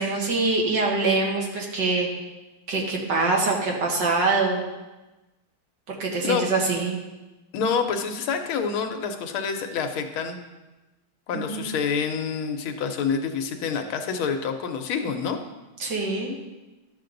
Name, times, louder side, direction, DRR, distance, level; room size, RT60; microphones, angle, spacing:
voice 1, 0.0-2.1 2.7-4.6 5.9-7.0 11.3-11.7 15.8-16.3, right 3 dB, 60° right, -1 dB, 2.0 m, -24 dB
voice 2, 7.5-10.4 11.3-15.4, left 6 dB, 75° left, 6 dB, 1.6 m, -27 dB
12.0 x 6.7 x 3.9 m, 1.1 s
omnidirectional pair, 2.3 m